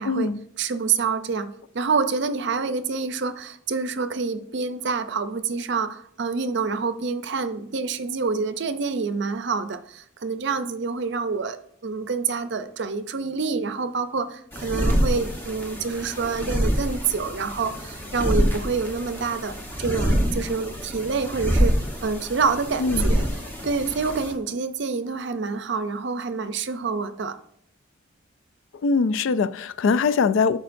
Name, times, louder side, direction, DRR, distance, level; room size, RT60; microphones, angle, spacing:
voice 1, 0.1-0.4 22.8-23.1 28.8-30.6, left 4 dB, 70° left, 0.3 m, -22 dB
voice 2, 0.6-21.7 22.0-23.2 23.6-27.3, right 4 dB, 60° right, 0.5 m, -27 dB
sound 1, 14.5-24.3, equal, 10° left, 1.0 m, -26 dB
12.0 x 4.6 x 2.6 m
head